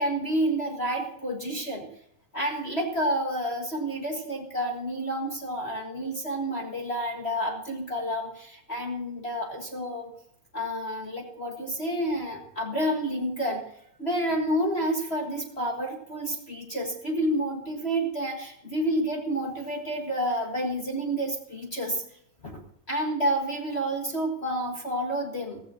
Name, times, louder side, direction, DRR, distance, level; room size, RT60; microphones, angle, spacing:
voice 1, 0.0-1.9 2.3-10.0 10.5-13.6 14.0-22.0 22.4-22.6 22.9-25.6, right 1 dB, 30° left, -1 dB, 1.1 m, -29 dB
15.5 x 15.0 x 2.9 m, 0.71 s
omnidirectional pair, 3.7 m